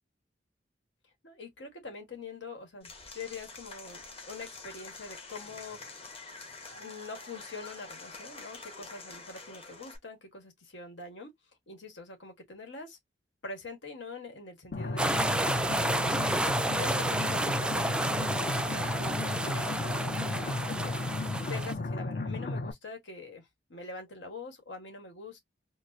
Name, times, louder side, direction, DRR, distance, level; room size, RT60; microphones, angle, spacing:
voice 1, 1.2-6.3 6.7-11.3 11.7-13.0 13.4-16.4 16.8-25.4, left 3 dB, 85° left, 1.4 m, -45 dB
Applause / Crowd, 2.8-10.0, left 3 dB, 35° left, 1.0 m, -47 dB
sound 1, 14.7-22.7, left 2 dB, 55° left, 0.6 m, -34 dB
sound 2, 15.0-21.7, right 1 dB, 5° right, 0.3 m, -30 dB
4.4 x 2.0 x 2.6 m
head